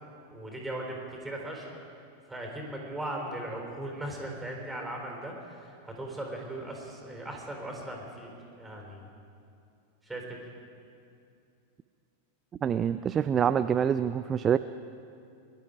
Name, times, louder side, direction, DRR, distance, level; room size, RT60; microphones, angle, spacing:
voice 1, 0.3-1.7 2.3-9.1 10.0-10.4, right 1 dB, 5° right, 0 dB, 3.9 m, -38 dB
voice 2, 12.6-14.6, right 8 dB, 25° right, 12 dB, 0.4 m, -26 dB
23.0 x 12.0 x 5.2 m, 2.5 s
figure-of-eight pair, 90°, 0 cm